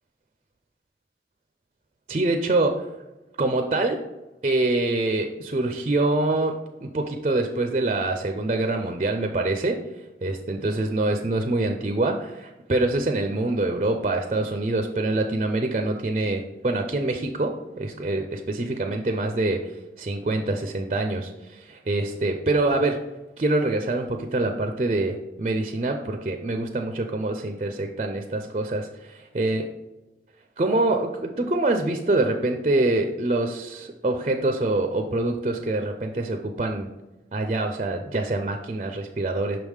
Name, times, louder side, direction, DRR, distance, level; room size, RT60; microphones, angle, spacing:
voice 1, 2.1-2.9 3.4-4.0 4.4-9.8 10.2-19.6 20.0-23.0 23.4-29.6 30.6-36.9 37.3-39.6, right 2 dB, 35° right, 5 dB, 0.4 m, -25 dB
5.9 x 3.5 x 4.7 m, 1.1 s
head